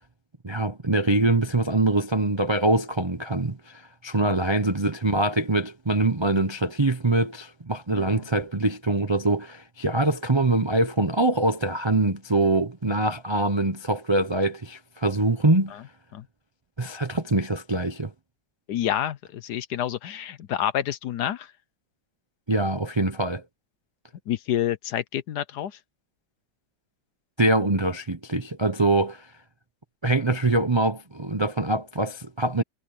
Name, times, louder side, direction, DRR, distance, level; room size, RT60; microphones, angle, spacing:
voice 1, 0.4-15.8 16.8-18.1 22.5-23.4 27.4-29.3 30.0-32.6, right 2 dB, 30° right, 0.5 m, -24 dB
voice 2, 18.7-21.5 24.3-25.8, left 11 dB, 65° left, 1.2 m, -28 dB
omnidirectional pair, 2.0 m